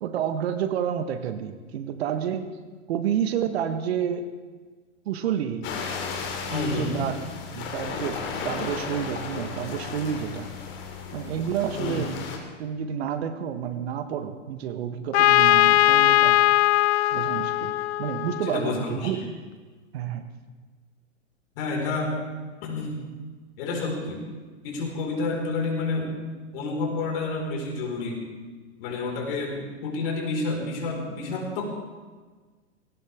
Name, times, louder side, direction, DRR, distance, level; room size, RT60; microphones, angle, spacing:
voice 1, 0.0-2.5 2.9-4.3 5.0-5.7 6.5-7.2 7.5-10.5 11.1-12.1 12.6-16.4 17.1-19.4 19.9-20.3, right 9 dB, 55° right, 9 dB, 1.5 m, -29 dB
sound 1, 5.6-12.4, left 5 dB, 30° left, 3.0 m, -34 dB
voice 2, 6.5-7.0 11.8-12.1 18.5-19.1 21.6-22.2 22.6-23.0 23.6-24.3 24.6-26.2 26.5-28.3 28.8-31.6, left 3 dB, 50° left, 0 dB, 5.1 m, -29 dB
Trumpet, 15.1-18.9, left 15 dB, 65° left, 0.5 m, -20 dB
20.0 x 18.0 x 3.6 m, 1.4 s
hypercardioid pair, 120°, 36 cm